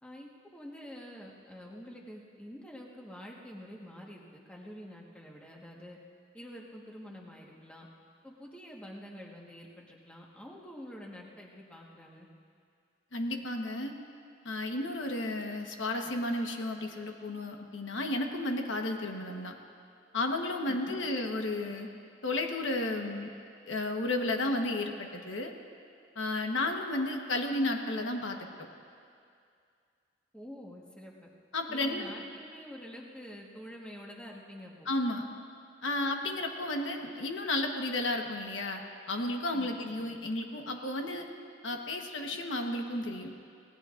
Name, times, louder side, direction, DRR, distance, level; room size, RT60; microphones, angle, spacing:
voice 1, 0.0-6.0 6.3-7.9 8.2-12.3 20.7-21.0 30.3-31.1 31.7-34.9 39.5-40.0, equal, 5° left, -2 dB, 1.4 m, -47 dB
voice 2, 13.1-13.9 14.4-19.6 20.1-21.9 22.2-23.3 23.6-25.5 26.2-28.7 31.5-32.1 34.9-35.2 35.8-38.8 39.1-41.3 41.6-43.3, left 2 dB, 85° left, 3 dB, 1.2 m, -33 dB
25.5 x 18.5 x 2.5 m, 2.3 s
head